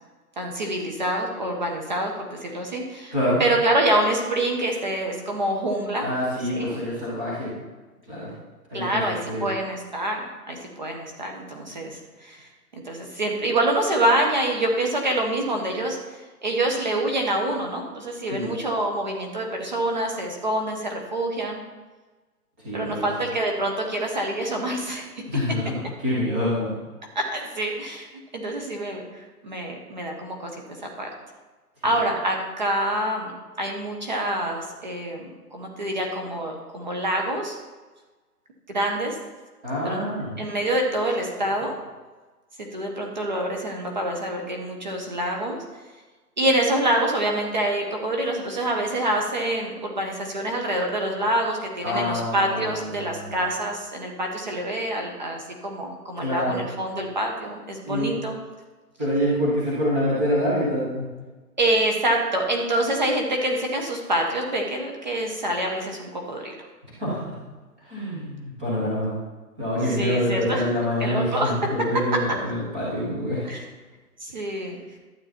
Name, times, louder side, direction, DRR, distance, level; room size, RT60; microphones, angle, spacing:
voice 1, 0.4-3.1 3.4-6.1 6.5-6.8 8.7-12.5 12.7-16.0 16.4-21.6 22.7-25.1 27.1-28.1 28.3-30.5 31.0-31.1 31.8-33.3 33.6-37.6 38.7-39.2 39.8-40.0 40.4-41.7 42.7-45.6 46.4-58.3 61.6-66.5 69.8-70.7 71.0-71.5 73.5-73.6 74.2-74.8, right 1 dB, 30° right, 1 dB, 1.1 m, -26 dB
voice 2, 6.0-7.5 8.1-8.3 8.7-9.4 18.3-18.5 22.6-23.0 25.3-26.8 31.8-32.0 39.6-40.4 51.8-53.4 56.2-56.6 57.9-58.1 59.0-61.0 67.0-67.3 67.8-69.1 69.6-73.4 74.5-74.6, equal, 5° right, -9 dB, 1.0 m, -26 dB
12.0 x 8.4 x 4.3 m, 1.3 s
hypercardioid pair, 175°, 47 cm